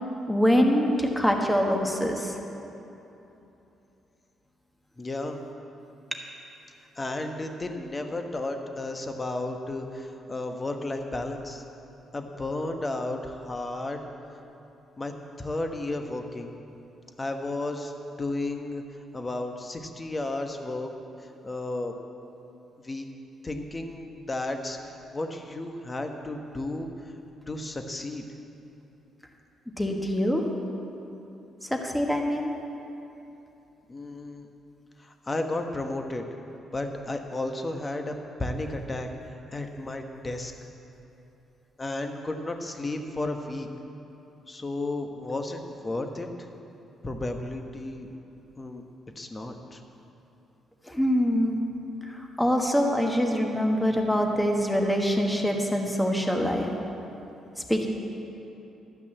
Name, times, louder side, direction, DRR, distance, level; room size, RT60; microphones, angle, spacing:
voice 1, 0.3-2.4 29.8-30.5 31.6-32.5 50.9-51.6 52.1-56.7 57.7-57.9, equal, 5° left, 2 dB, 1.3 m, -24 dB
voice 2, 5.0-5.4 7.0-11.6 12.1-14.0 15.0-15.1 15.4-16.5 17.2-17.9 18.2-18.8 19.1-20.9 21.4-21.9 22.8-23.0 23.4-27.1 27.5-28.2 33.9-34.5 35.0-36.2 36.7-39.1 39.5-40.5 41.8-43.7 44.5-46.3 47.0-48.1 48.6-48.8 49.1-49.8, left 2 dB, 25° left, 5 dB, 1.1 m, -33 dB
12.5 x 6.0 x 8.4 m, 2.9 s
cardioid pair, 90°, 0 cm